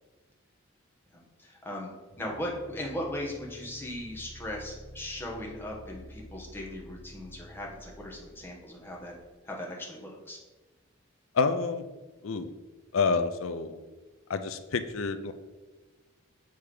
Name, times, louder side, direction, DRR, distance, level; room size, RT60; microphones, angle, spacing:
voice 1, 1.1-1.9 2.2-9.1 9.4-10.4, left 1 dB, 10° left, -2 dB, 1.2 m, -38 dB
sound 1, 2.1-9.3, left 1 dB, 35° left, 1.2 m, -50 dB
voice 2, 11.3-11.8 12.2-12.5 12.9-13.8 14.3-15.3, left 4 dB, 75° left, 10 dB, 0.5 m, -28 dB
7.8 x 3.4 x 4.9 m, 1.2 s
head